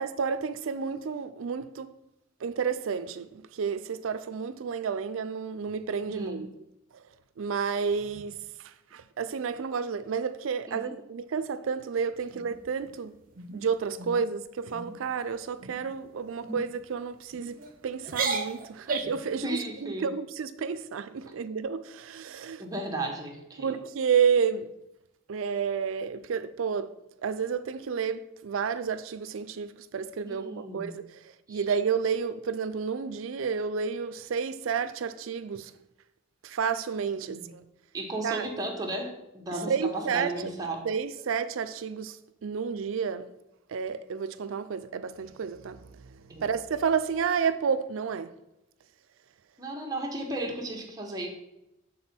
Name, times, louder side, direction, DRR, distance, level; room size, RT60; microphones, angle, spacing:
voice 1, 0.0-1.9 2.4-3.3 3.6-6.5 7.4-8.4 8.9-13.1 13.5-17.6 17.8-22.6 23.6-24.7 25.3-26.9 27.2-31.0 31.5-35.7 36.4-37.4 38.2-38.4 39.7-40.3 40.8-42.1 42.4-43.3 43.7-45.8 46.4-48.3, right 6 dB, 85° right, 0.4 m, -30 dB
voice 2, 6.0-6.5 10.7-11.0 19.4-20.1 22.6-23.7 30.2-30.9 31.5-31.7 37.2-37.5 37.9-40.9 46.3-46.5 49.6-51.3, right 1 dB, 20° right, 1.0 m, -35 dB
sound 1, 12.3-12.9 13.3-13.6 14.0-14.2 14.6-15.0 15.6-15.9 16.4-16.6 17.3-17.7 18.0-19.3, right 4 dB, 45° right, 0.8 m, -34 dB
7.8 x 3.8 x 4.3 m
head